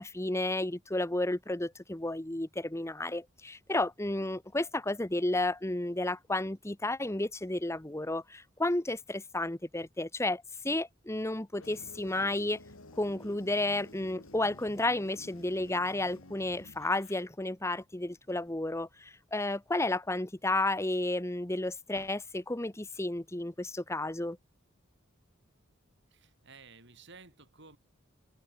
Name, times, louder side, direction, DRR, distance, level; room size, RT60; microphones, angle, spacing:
voice 1, 0.0-12.6 13.0-24.4, left 2 dB, 15° left, 1.1 m, -32 dB
sound 1, 11.6-17.2, left 2 dB, 75° left, 3.1 m, -52 dB
voice 2, 26.1-27.8, right 4 dB, 60° right, 7.0 m, -54 dB
head